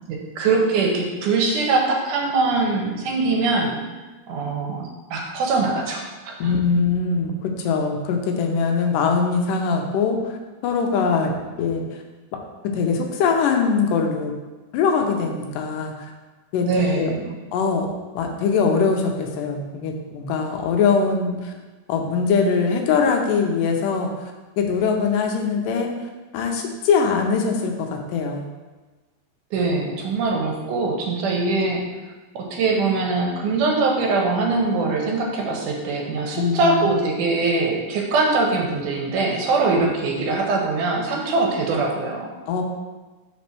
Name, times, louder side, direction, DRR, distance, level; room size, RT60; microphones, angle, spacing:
voice 1, 0.1-3.8 4.3-6.5 16.6-17.3 29.5-31.8 32.3-42.3, right 3 dB, 75° right, 0 dB, 2.4 m, -22 dB
voice 2, 6.4-10.4 10.6-11.3 11.6-12.0 12.7-14.3 14.7-16.1 16.5-16.7 16.9-17.1 17.5-17.9 18.1-21.5 21.9-24.3 24.6-25.9 26.3-28.5 36.3-37.0 42.5-42.6, left 5 dB, 90° left, 3 dB, 2.3 m, -22 dB
5.3 x 4.2 x 5.8 m, 1.2 s
omnidirectional pair, 3.8 m